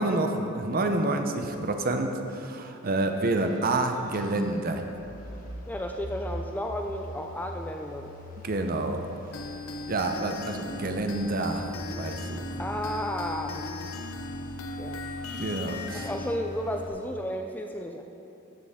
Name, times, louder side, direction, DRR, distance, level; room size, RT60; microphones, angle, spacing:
voice 1, 0.0-4.8 8.4-9.0 9.9-12.4 15.4-16.1, right 2 dB, 45° right, 5 dB, 0.7 m, -28 dB
sound 1, 2.8-16.9, left 1 dB, 40° left, 1.2 m, -42 dB
voice 2, 5.7-8.1 12.6-13.8 14.8-15.1 15.9-18.0, equal, 10° left, 3 dB, 0.3 m, -33 dB
sound 2, 9.3-16.4, left 2 dB, 80° left, 0.6 m, -38 dB
14.0 x 6.8 x 3.6 m, 2.8 s
head